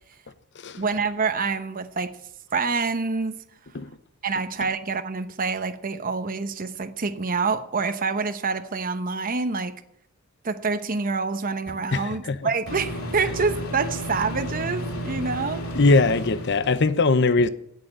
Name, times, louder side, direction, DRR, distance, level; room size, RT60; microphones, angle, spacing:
voice 1, 0.8-2.2 2.5-3.4 4.2-9.7 10.4-15.7, right 4 dB, 40° right, 0.9 m, -27 dB
Microwave oven, 11.7-11.8 12.7-16.9, equal, 80° left, 2.8 m, -32 dB
voice 2, 11.9-12.4 15.7-17.5, left 3 dB, 55° left, 0.8 m, -20 dB
16.5 x 6.7 x 10.0 m
head